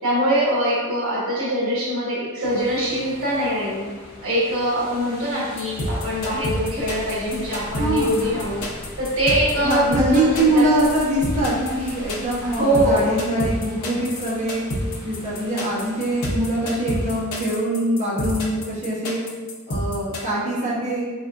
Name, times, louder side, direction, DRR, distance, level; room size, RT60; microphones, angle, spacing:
voice 1, 0.0-3.9 4.2-8.6 9.0-10.7 12.6-13.2, equal, 65° right, -7 dB, 1.4 m, -23 dB
sound 1, 2.4-17.2, left 1 dB, 45° left, 1.2 m, -42 dB
sound 2, 5.6-20.2, left 1 dB, 70° left, 0.8 m, -29 dB
sound 3, 5.8-13.1, equal, 10° left, 1.0 m, -40 dB
voice 2, 7.7-8.3 9.6-14.6 15.0-19.2 19.7-21.1, right 1 dB, 30° right, -7 dB, 1.0 m, -23 dB
4.2 x 3.4 x 2.5 m, 1.4 s
head